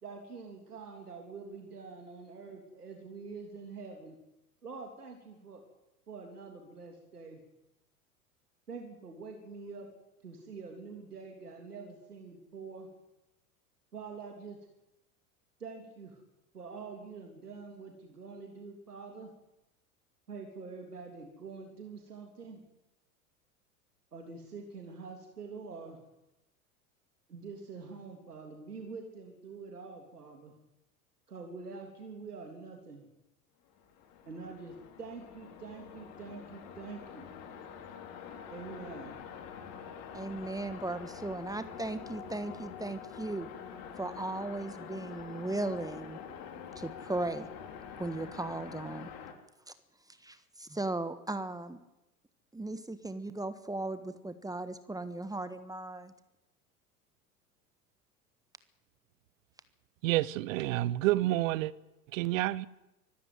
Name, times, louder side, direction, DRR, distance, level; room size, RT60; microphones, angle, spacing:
voice 1, 0.0-4.2 4.6-5.6 6.1-7.4 8.7-9.9 10.2-12.9 13.9-14.6 15.6-16.2 16.5-19.3 20.3-22.6 24.1-26.0 27.3-30.5 31.3-33.1 34.3-37.3 38.5-39.2, right 4 dB, 85° right, 3.3 m, -45 dB
sound 1, 33.7-49.3, left 7 dB, 50° left, 3.4 m, -46 dB
voice 2, 40.1-43.5 44.0-46.2 46.7-47.5 48.0-49.1 49.7-51.8 52.5-56.1, right 2 dB, 10° right, 1.5 m, -37 dB
voice 3, 60.0-61.7 62.1-62.7, right 16 dB, 60° right, 1.1 m, -29 dB
24.5 x 14.5 x 9.3 m
figure-of-eight pair, 85°, 45 cm